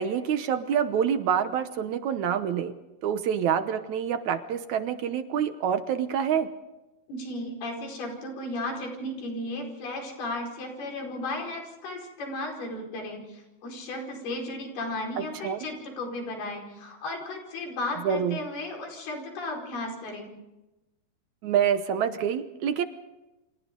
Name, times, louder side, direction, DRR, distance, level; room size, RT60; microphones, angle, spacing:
voice 1, 0.0-2.7 3.0-6.5 15.2-15.7 18.0-18.4 21.4-22.8, right 8 dB, 70° right, 10 dB, 1.9 m, -27 dB
voice 2, 7.1-20.3, left 2 dB, 90° left, 1 dB, 6.9 m, -35 dB
29.0 x 26.5 x 3.8 m, 1.0 s
omnidirectional pair, 4.3 m